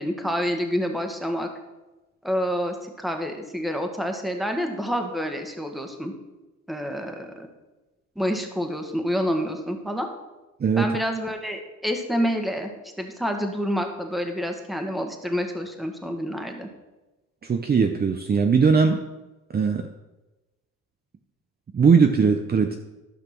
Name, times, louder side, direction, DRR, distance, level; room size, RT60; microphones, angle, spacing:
voice 1, 0.0-1.5 2.2-6.1 6.7-7.5 8.1-10.1 10.8-12.7 13.0-16.7, equal, ahead, 4 dB, 1.6 m, -28 dB
voice 2, 17.4-19.0 19.5-19.9 21.7-22.8, right 5 dB, 30° right, 5 dB, 0.8 m, -19 dB
12.5 x 5.9 x 6.0 m, 1.1 s
cardioid pair, 90°, 30 cm